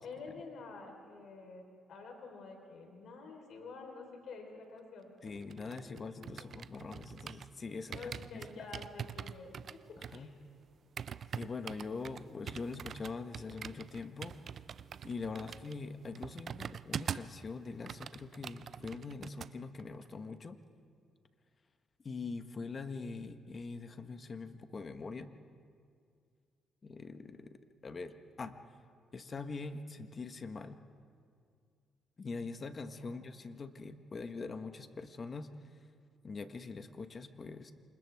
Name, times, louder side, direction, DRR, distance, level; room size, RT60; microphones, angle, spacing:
voice 1, 0.0-6.5 7.9-10.3 33.0-33.2, left 4 dB, 70° left, 2 dB, 3.9 m, -49 dB
voice 2, 5.2-8.7 10.1-10.3 11.3-14.6 15.0-20.6 22.0-25.3 26.8-27.6 27.8-28.6 29.1-30.8 32.2-35.8 36.2-37.7, left 4 dB, 40° left, 9 dB, 1.2 m, -43 dB
sound 1, 5.3-7.6 7.9-17.4 17.7-19.5 19.8-20.1, right 7 dB, 55° right, 0.5 m, -44 dB
28.5 x 26.5 x 3.5 m, 2.3 s
cardioid pair, 90°, 0 cm